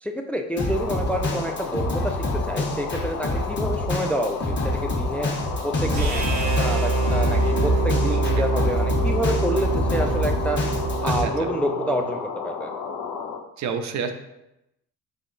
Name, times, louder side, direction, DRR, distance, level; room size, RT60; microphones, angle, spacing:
voice 1, 0.0-5.3 5.6-10.6 11.0-12.7, equal, 5° left, 5 dB, 0.3 m, -28 dB
Drum kit, 0.6-11.2, left 1 dB, 40° left, 1.1 m, -27 dB
sound 1, 0.7-13.4, left 6 dB, 80° left, 0.7 m, -33 dB
sound 2, 5.9-12.1, right 2 dB, 90° right, 1.5 m, -24 dB
voice 2, 13.6-14.1, right 6 dB, 65° right, 7 dB, 0.6 m, -28 dB
5.5 x 3.6 x 2.6 m, 0.88 s
cardioid pair, 90°, 30 cm